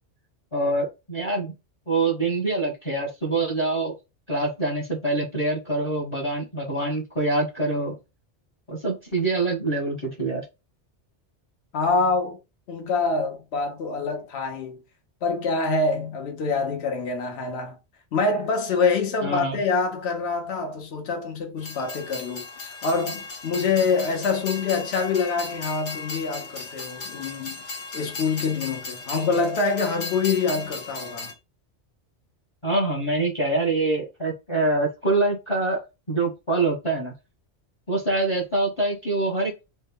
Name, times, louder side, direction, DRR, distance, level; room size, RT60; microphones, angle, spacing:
voice 1, 0.5-1.5 1.9-3.9 4.3-8.0 8.7-10.4 19.2-19.6 32.6-35.8 36.1-37.1 37.9-39.5, right 2 dB, 30° left, 0.8 m, -25 dB
voice 2, 11.7-12.4 12.7-14.8 15.2-17.7 18.1-31.3, left 4 dB, 65° left, 1.1 m, -26 dB
Train, 21.6-31.3, left 3 dB, 85° left, 1.2 m, -36 dB
3.2 x 2.2 x 3.5 m
omnidirectional pair, 1.2 m